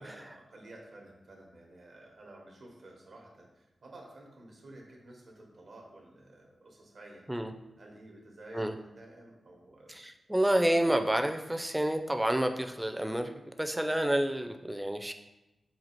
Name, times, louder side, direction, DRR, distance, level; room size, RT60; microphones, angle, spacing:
voice 1, 0.0-7.4 7.8-9.9, right 1 dB, 70° right, 0 dB, 1.0 m, -52 dB
voice 2, 9.9-15.1, right 1 dB, 10° right, 6 dB, 0.4 m, -29 dB
4.1 x 2.4 x 4.4 m, 0.97 s
cardioid pair, 45°, 0 cm